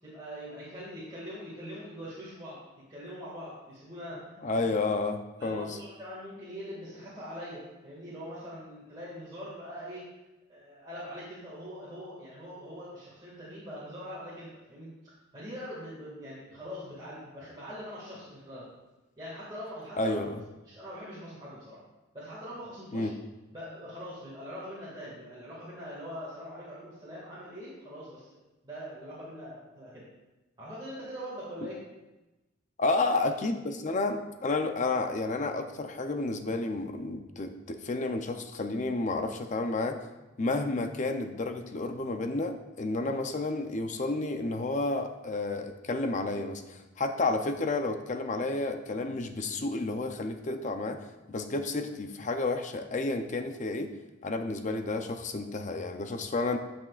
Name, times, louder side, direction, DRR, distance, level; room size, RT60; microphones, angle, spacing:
voice 1, 0.0-2.6 2.9-4.7 5.4-10.1 10.5-14.9 15.3-18.7 19.2-20.3 20.7-21.8 22.1-23.1 23.5-28.3 28.6-30.0 30.6-31.8, equal, 25° right, -9 dB, 2.0 m, -42 dB
voice 2, 4.4-5.8 20.0-20.4 22.9-23.1 32.8-40.0 40.4-53.9 54.2-56.6, left 2 dB, 40° left, 6 dB, 0.6 m, -31 dB
12.5 x 6.3 x 2.4 m, 1.1 s
head